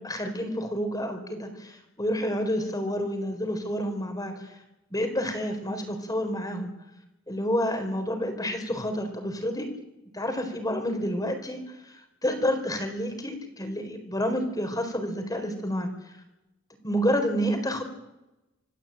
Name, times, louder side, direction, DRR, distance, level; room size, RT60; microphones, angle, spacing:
voice 1, 0.0-4.5 4.9-6.7 7.3-9.7 10.1-11.6 11.8-11.9 12.2-15.9 16.8-17.8, equal, 20° left, 6 dB, 4.6 m, -29 dB
26.5 x 17.5 x 9.1 m, 0.94 s
head